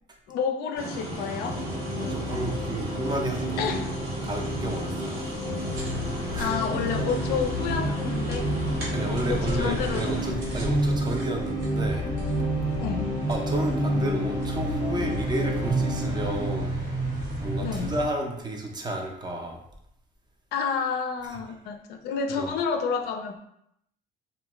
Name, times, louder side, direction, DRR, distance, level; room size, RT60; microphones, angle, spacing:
voice 1, 0.3-1.6 3.6-3.9 6.4-8.5 9.3-10.6 12.8-13.1 17.6-17.9 20.5-23.4, left 6 dB, 70° left, 4 dB, 0.4 m, -30 dB
sound 1, 0.8-10.3, right 2 dB, 70° right, 1.1 m, -35 dB
sound 2, 1.5-16.5, left 2 dB, 25° left, 0.7 m, -33 dB
voice 2, 2.0-3.9 4.2-5.2 6.3-6.5 8.9-12.0 13.3-16.8 17.4-19.6 22.4-22.5, right 1 dB, 25° right, 1 dB, 0.5 m, -32 dB
sound 3, 5.6-18.1, right 2 dB, 90° right, 0.8 m, -30 dB
2.2 x 2.1 x 2.9 m, 0.76 s
cardioid pair, 110°, 17 cm